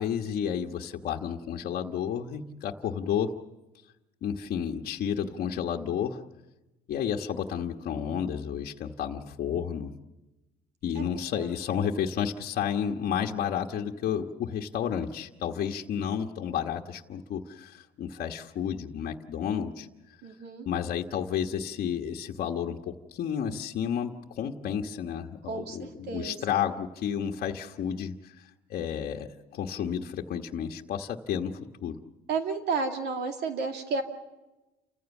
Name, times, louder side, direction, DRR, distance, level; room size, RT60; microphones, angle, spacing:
voice 1, 0.0-3.3 4.2-6.2 6.9-9.9 10.8-19.9 20.7-32.0, left 8 dB, 60° left, 2 dB, 1.3 m, -31 dB
voice 2, 20.2-20.7 25.5-26.4 32.3-34.0, right 4 dB, 75° right, 4 dB, 2.4 m, -32 dB
29.0 x 15.5 x 7.2 m, 1.0 s
cardioid pair, 110°, 17 cm